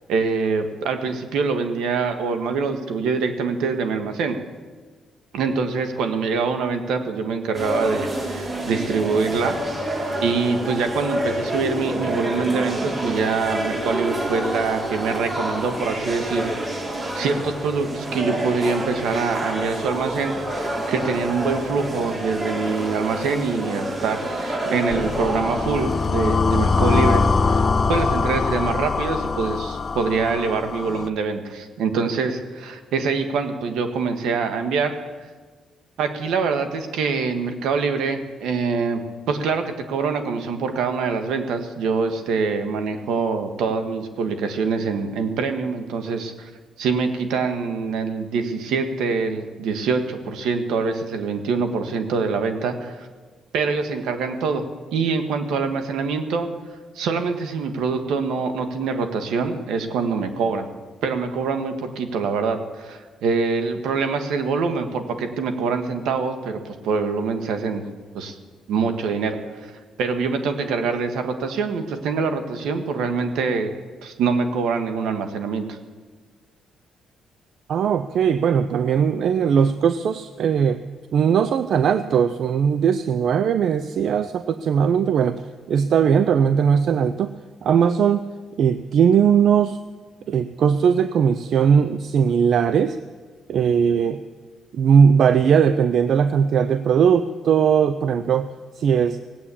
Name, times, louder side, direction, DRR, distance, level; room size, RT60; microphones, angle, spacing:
voice 1, 0.1-4.4 5.3-9.6 10.2-16.5 17.1-34.9 36.0-39.0 39.3-46.5 46.8-53.1 53.5-54.6 54.9-56.5 56.9-60.7 61.0-67.8 68.1-68.3 68.7-69.4 69.6-69.7 70.0-73.7 74.0-75.8, right 5 dB, 85° right, 7 dB, 1.6 m, -24 dB
sound 1, 7.5-26.1, right 1 dB, 30° right, 4.2 m, -28 dB
sound 2, 24.9-31.1, left 4 dB, 40° left, 0.7 m, -22 dB
voice 2, 77.7-80.8 81.1-85.4 85.7-87.3 87.6-88.3 88.6-89.8 90.3-93.0 93.5-94.2 94.7-98.5 98.8-99.2, right 7 dB, 65° right, 12 dB, 0.5 m, -19 dB
17.5 x 8.7 x 8.5 m, 1.4 s
cardioid pair, 90°, 0 cm